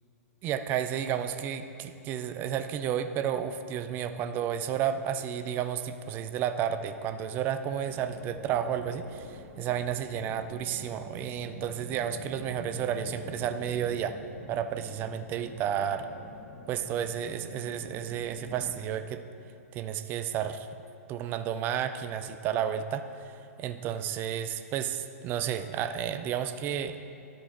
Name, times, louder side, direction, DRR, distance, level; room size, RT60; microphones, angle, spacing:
voice 1, 0.4-14.2 14.5-16.1 16.7-19.2 19.7-20.7 21.1-27.0, right 9 dB, 25° right, 10 dB, 0.3 m, -32 dB
sound 1, 7.9-18.8, left 1 dB, 25° left, 1.2 m, -46 dB
11.5 x 5.2 x 3.7 m, 2.7 s
figure-of-eight pair, 110°, 8 cm